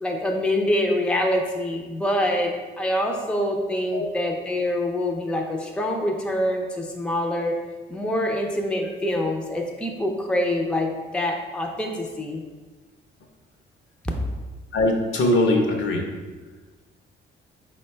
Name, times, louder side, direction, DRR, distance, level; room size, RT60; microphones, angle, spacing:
voice 1, 0.0-7.5 7.9-12.4, left 1 dB, 5° left, 2 dB, 0.5 m, -25 dB
voice 2, 14.7-16.0, left 1 dB, 70° left, 2 dB, 0.7 m, -21 dB
4.4 x 2.2 x 4.3 m, 1.3 s
cardioid pair, 90°, 20 cm